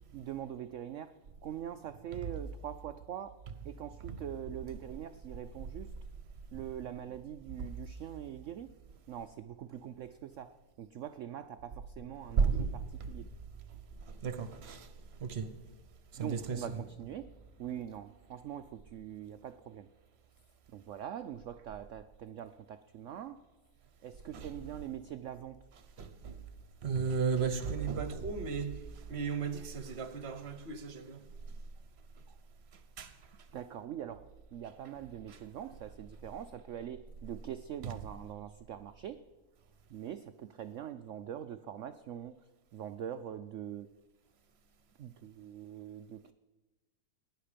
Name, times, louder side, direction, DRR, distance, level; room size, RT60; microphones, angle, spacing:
voice 1, 0.1-1.1 1.4-3.3 3.6-5.9 6.5-8.7 9.1-13.2 16.2-17.3 17.6-19.9 20.7-23.4 24.0-25.6 32.3-32.4 33.5-39.2 39.9-42.3 42.7-43.9 45.0-46.3, right 10 dB, 85° right, 0.6 m, -43 dB
voice 2, 12.4-12.8 14.1-14.9 15.2-15.5 16.1-16.8 24.3-24.5 26.0-26.4 26.8-28.8 29.1-31.2 33.0-33.1 37.8-37.9, right 5 dB, 45° right, 1.0 m, -34 dB
17.5 x 10.5 x 5.1 m
omnidirectional pair, 1.9 m